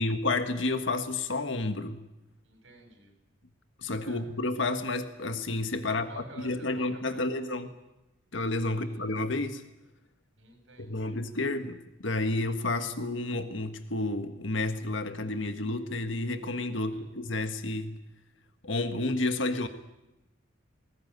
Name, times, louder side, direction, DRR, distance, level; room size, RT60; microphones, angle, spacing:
voice 1, 0.0-2.0 3.8-6.1 6.3-7.7 8.3-9.6 10.8-18.0 18.6-19.7, left 2 dB, 75° left, 8 dB, 1.6 m, -30 dB
voice 2, 2.4-3.1 4.0-4.2 5.9-7.7 8.7-9.1 10.4-11.2 16.7-17.1, right 2 dB, 75° right, 5 dB, 6.3 m, -52 dB
20.5 x 19.0 x 9.4 m, 0.96 s
head